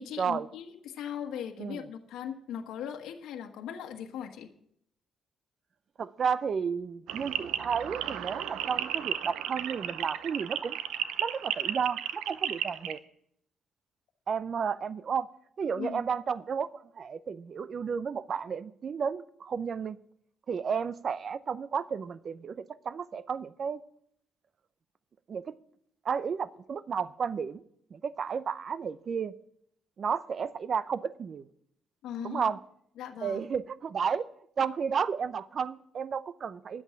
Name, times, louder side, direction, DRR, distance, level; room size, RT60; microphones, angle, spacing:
voice 1, 0.0-4.5 15.7-16.0 32.0-32.5 33.0-33.5, left 8 dB, 85° left, 3 dB, 1.2 m, -39 dB
voice 2, 6.0-10.8 11.2-13.0 14.3-15.3 15.6-20.0 20.5-23.8 25.3-25.5 26.0-27.6 27.9-29.3 30.0-31.4 32.2-32.6 33.2-34.3 34.6-36.8, right 6 dB, 50° right, 16 dB, 0.6 m, -32 dB
sound 1, 7.1-13.0, right 10 dB, 90° right, 0.6 m, -34 dB
11.0 x 8.1 x 8.4 m, 0.70 s
cardioid pair, 90°, 0 cm